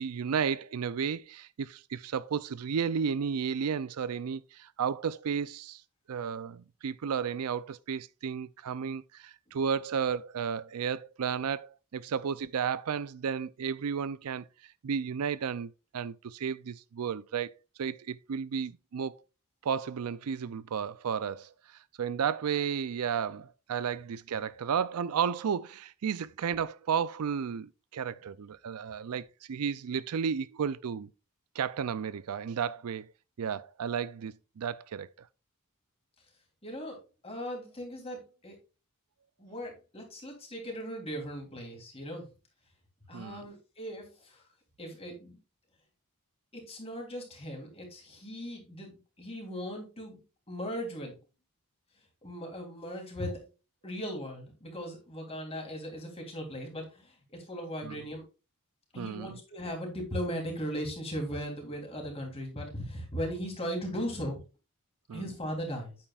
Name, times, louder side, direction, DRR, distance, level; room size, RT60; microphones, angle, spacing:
voice 1, 0.0-5.8 6.1-14.5 14.8-19.2 19.6-21.5 22.0-31.1 31.6-33.1 33.4-35.1 43.1-43.5 57.8-58.0 59.0-59.4 65.1-65.2, right 7 dB, 80° right, 0.4 m, -33 dB
voice 2, 36.6-37.0 37.2-38.5 39.4-42.3 43.1-44.4 44.8-45.4 46.5-50.2 50.5-51.2 52.2-53.4 53.8-58.2 58.9-64.4 65.1-66.0, equal, 25° left, 3.2 m, -38 dB
8.8 x 8.8 x 2.4 m
head